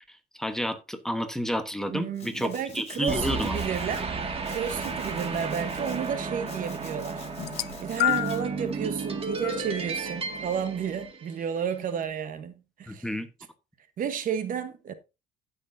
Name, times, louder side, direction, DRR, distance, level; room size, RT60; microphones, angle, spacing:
voice 1, 0.4-3.6 12.9-13.3, equal, 5° left, 1.1 m, -30 dB
voice 2, 1.9-4.1 4.5-7.2 7.8-13.1 14.0-14.9, right 8 dB, 55° right, 1.1 m, -32 dB
Domestic sounds home sounds, 2.1-4.0 4.4-6.1 6.5-8.4, left 5 dB, 40° left, 4.0 m, -49 dB
sound 1, 3.1-11.6, right 4 dB, 35° right, 2.0 m, -33 dB
sound 2, 7.4-8.5 9.4-9.6 10.7-10.8, left 21 dB, 75° left, 0.4 m, -28 dB
15.0 x 6.3 x 2.7 m
cardioid pair, 110°, 17 cm